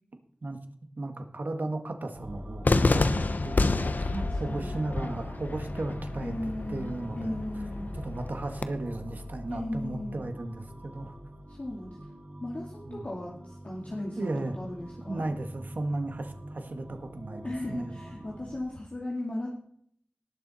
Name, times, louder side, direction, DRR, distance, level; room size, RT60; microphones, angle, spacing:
voice 1, 1.0-6.3 6.7-7.4 8.0-11.1 12.9-13.1 14.2-14.6 15.1-18.0, right 2 dB, 70° right, 6 dB, 1.7 m, -35 dB
sound 1, 2.1-18.6, equal, 50° right, 4.0 m, -43 dB
Cheering / Fireworks, 2.6-8.6, left 3 dB, 65° left, 0.8 m, -29 dB
voice 2, 4.2-4.8 6.2-7.9 9.5-10.2 11.5-12.0 12.4-15.2 17.4-19.5, left 1 dB, 50° left, -3 dB, 2.3 m, -37 dB
18.5 x 7.1 x 4.3 m, 0.66 s
wide cardioid pair, 70°, 3 cm